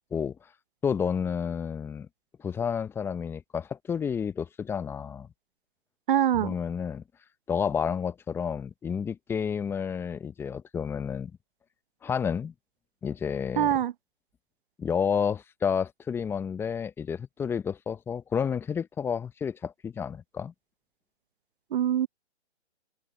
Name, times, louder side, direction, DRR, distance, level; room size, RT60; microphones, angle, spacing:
voice 1, 0.8-2.1 2.4-5.3 6.4-7.0 7.5-11.3 12.0-12.5 13.0-13.7 14.8-20.5, left 7 dB, 5° left, 0.8 m, -30 dB
voice 2, 6.1-6.5 13.6-13.9 21.7-22.1, right 10 dB, 45° right, 0.8 m, -24 dB
figure-of-eight pair, 135°, 35 cm